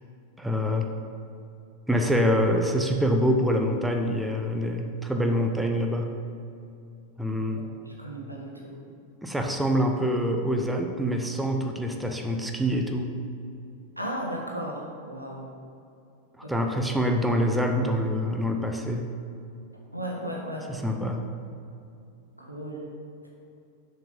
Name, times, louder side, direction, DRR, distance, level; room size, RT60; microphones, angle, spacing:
voice 1, 0.4-0.9 1.9-6.1 7.2-7.6 9.2-13.1 16.5-19.1 20.7-21.2, equal, 5° right, 3 dB, 0.7 m, -25 dB
voice 2, 7.5-8.7 14.0-15.5 16.4-16.5 19.9-20.7 22.4-22.9, equal, 90° right, -2 dB, 1.4 m, -35 dB
7.2 x 5.8 x 5.2 m, 2.6 s
figure-of-eight pair, 90°, 0 cm